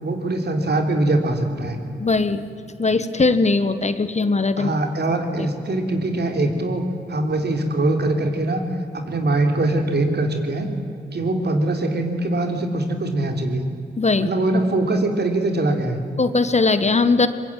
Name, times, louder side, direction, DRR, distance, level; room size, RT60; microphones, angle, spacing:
voice 1, 0.0-1.9 4.6-6.8 7.1-8.6 8.9-10.7 11.1-13.7 14.2-16.0, right 2 dB, 60° right, 4 dB, 3.6 m, -22 dB
voice 2, 2.0-2.5 2.8-4.7 5.4-5.5 14.0-14.3 16.2-17.3, left 3 dB, 35° left, 11 dB, 1.4 m, -19 dB
23.5 x 21.5 x 9.2 m, 2.7 s
cardioid pair, 70°, 19 cm